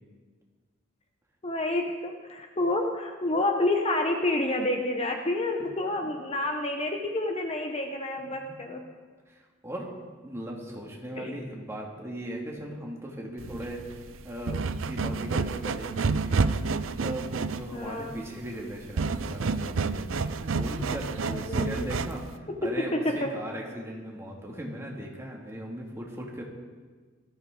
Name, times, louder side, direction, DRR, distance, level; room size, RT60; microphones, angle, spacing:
voice 1, 1.4-8.8 11.2-11.4 17.7-18.2 21.2-21.9 22.6-23.3, left 2 dB, 30° left, 3 dB, 1.0 m, -29 dB
voice 2, 9.3-9.9 10.2-13.8 14.2-16.6 17.0-26.4, equal, 15° right, -2 dB, 2.3 m, -38 dB
sound 1, 13.4-22.3, right 4 dB, 85° right, 0.5 m, -30 dB
19.0 x 13.5 x 3.9 m, 1.5 s
head